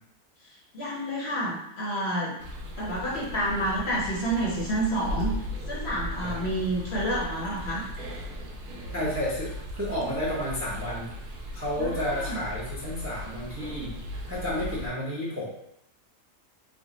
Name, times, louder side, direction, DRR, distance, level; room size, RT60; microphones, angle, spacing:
voice 1, 0.4-2.3 2.8-5.3 5.7-7.8 11.8-12.4, right 1 dB, 55° left, -5 dB, 0.8 m, -29 dB
sound 1, 2.4-14.9, left 1 dB, 85° right, 1.2 m, -37 dB
voice 2, 8.9-11.1 11.5-13.9 14.3-15.5, equal, 15° right, -6 dB, 0.5 m, -31 dB
3.6 x 2.2 x 3.7 m, 0.79 s
omnidirectional pair, 1.6 m